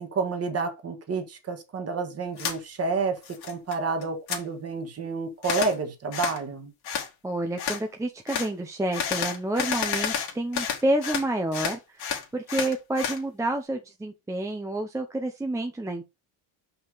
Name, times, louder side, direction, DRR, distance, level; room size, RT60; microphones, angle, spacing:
voice 1, 0.0-6.7, right 4 dB, 35° right, 1.7 m, -30 dB
sound 1, 2.4-2.6 3.0-3.8 4.0-4.4 5.4-5.7 6.1-6.4 6.8-7.1 7.6-7.8 8.3-8.5 8.9-11.3 11.5-13.2, left 8 dB, 55° left, 2.3 m, -30 dB
voice 2, 7.2-16.1, right 1 dB, 5° right, 0.7 m, -29 dB
5.7 x 5.6 x 4.1 m
cardioid pair, 135°, 45 cm